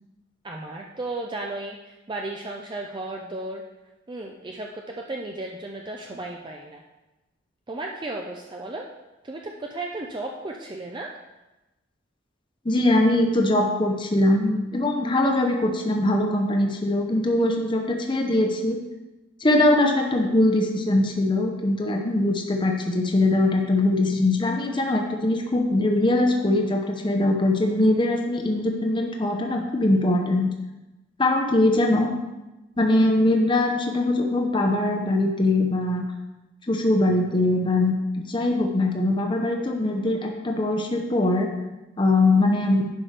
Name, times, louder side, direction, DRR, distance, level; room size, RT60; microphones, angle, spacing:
voice 1, 0.4-3.6 4.1-6.8 7.7-8.9 9.2-11.1, right 2 dB, 25° right, 0 dB, 0.5 m, -34 dB
voice 2, 12.6-18.8 19.4-30.5 31.2-32.1 32.8-36.0 36.7-41.5 42.0-42.9, left 1 dB, 25° left, 2 dB, 0.8 m, -22 dB
10.5 x 5.9 x 3.3 m, 1.0 s
head